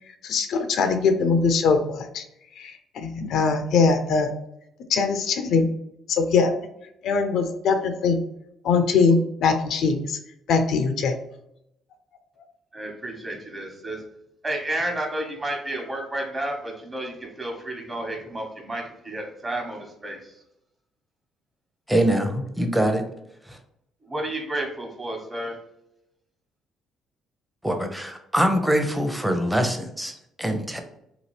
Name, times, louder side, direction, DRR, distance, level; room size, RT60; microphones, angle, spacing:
voice 1, 0.2-2.2 2.6-4.3 4.9-5.7 6.1-6.5 7.0-8.2 8.6-10.2 10.5-11.2, left 4 dB, 70° left, 7 dB, 0.4 m, -22 dB
voice 2, 12.7-14.0 14.4-20.4 24.0-25.6, right 1 dB, 25° right, 2 dB, 1.1 m, -31 dB
voice 3, 21.9-23.0 23.4-23.6 27.6-30.8, right 1 dB, 5° right, 5 dB, 0.6 m, -24 dB
2.8 x 2.4 x 3.2 m, 0.80 s
supercardioid pair, 60°, 0 cm